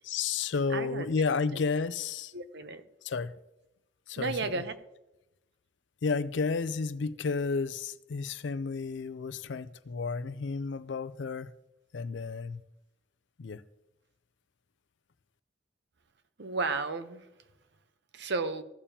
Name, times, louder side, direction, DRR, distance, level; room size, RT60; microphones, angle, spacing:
voice 1, 0.0-2.3 3.0-3.3 4.1-4.6 6.0-11.5 11.9-12.6 13.4-13.6, left 4 dB, 70° left, 0.5 m, -32 dB
voice 2, 0.7-1.1 2.3-2.8 4.2-4.8 16.4-17.3 18.1-18.6, right 3 dB, 65° right, 0.8 m, -33 dB
15.5 x 7.0 x 2.8 m
head